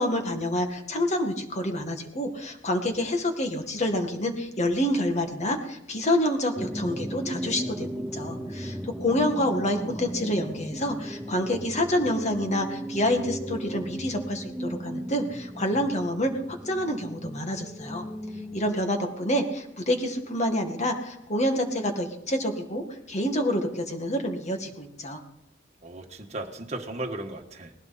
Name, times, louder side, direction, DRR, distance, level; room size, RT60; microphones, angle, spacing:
voice 1, 0.0-16.3 16.6-18.1 18.5-25.2, left 1 dB, 35° left, 5 dB, 1.9 m, -27 dB
sound 1, 6.6-18.7, equal, ahead, 0.7 m, -36 dB
voice 2, 25.8-27.8, right 2 dB, 35° right, 2 dB, 1.5 m, -36 dB
20.0 x 16.0 x 4.3 m, 0.79 s
head